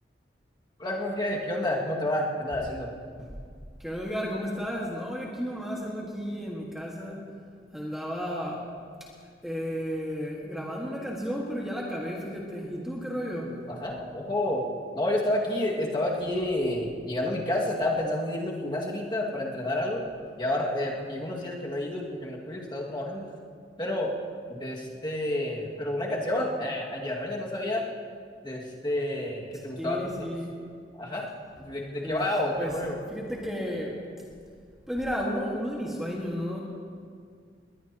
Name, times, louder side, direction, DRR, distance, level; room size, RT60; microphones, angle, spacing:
voice 1, 0.8-2.9 13.7-14.7 14.9-20.0 20.4-23.3 23.8-24.1 24.5-27.9 28.4-30.3 30.9-31.3 31.6-33.0, left 1 dB, 25° left, -3 dB, 2.0 m, -29 dB
voice 2, 3.8-7.3 7.7-8.7 9.0-9.1 9.4-13.6 29.8-30.6 32.0-32.3 32.6-32.8 33.1-34.0 34.9-36.6, equal, ahead, -3 dB, 1.7 m, -33 dB
21.0 x 20.0 x 3.0 m, 2.1 s
head